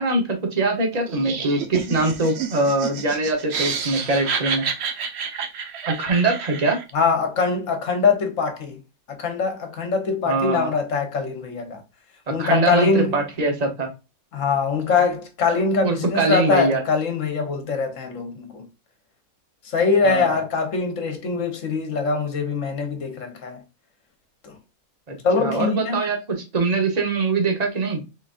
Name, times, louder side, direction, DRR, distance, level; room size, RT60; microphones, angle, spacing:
voice 1, 0.0-4.7 5.9-6.8 10.2-10.7 12.3-13.9 15.8-16.8 20.0-20.4 25.1-28.0, right 3 dB, 30° right, 1.1 m, -23 dB
Laughter, 1.1-6.9, right 6 dB, 55° right, 0.9 m, -30 dB
voice 2, 6.9-8.8 9.1-11.8 12.3-13.2 14.3-18.7 19.6-23.6 24.4-24.5 25.2-26.0, left 4 dB, 65° left, 1.4 m, -23 dB
4.3 x 4.0 x 2.5 m
omnidirectional pair, 1.5 m